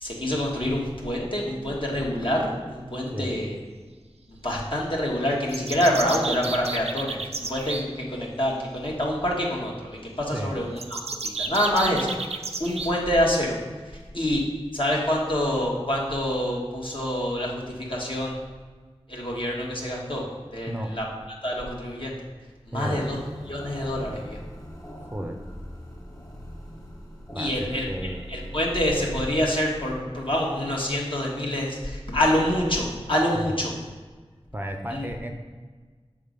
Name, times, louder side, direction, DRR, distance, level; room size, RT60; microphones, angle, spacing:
voice 1, 0.0-3.6 4.3-12.1 12.6-13.6 14.1-14.4 14.7-18.4 19.1-20.2 20.5-21.0 21.4-22.1 22.7-23.2 23.5-24.4 27.3-33.7 34.9-35.0, equal, 55° left, -3 dB, 1.4 m, -26 dB
sound 1, 5.5-7.9 10.8-12.9, right 3 dB, 85° right, 0.4 m, -32 dB
voice 2, 22.7-23.0 25.0-25.4 27.3-28.2 33.6-33.7 34.5-35.3, right 1 dB, 20° right, 3 dB, 0.6 m, -33 dB
sound 2, 22.8-30.8, equal, 30° left, 1.6 m, -42 dB
6.1 x 3.6 x 5.1 m, 1.4 s
wide cardioid pair, 40°, 11 cm